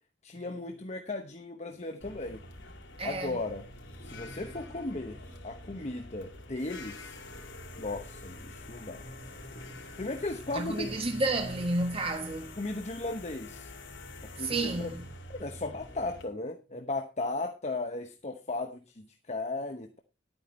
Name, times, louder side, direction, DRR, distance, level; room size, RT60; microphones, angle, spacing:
voice 1, 0.2-2.4 3.0-3.6 4.0-5.2 5.4-7.2 7.8-9.0 10.0-10.9 12.6-13.7 14.2-14.9 15.3-20.0, left 2 dB, 35° left, 1.0 m, -36 dB
sound 1, 2.0-16.2, left 2 dB, 85° left, 3.1 m, -46 dB
voice 2, 3.0-3.4 4.1-4.4 5.8-5.9 9.0-9.8 10.5-12.6 14.4-15.0, right 2 dB, 30° right, 1.3 m, -32 dB
11.0 x 9.1 x 4.4 m
head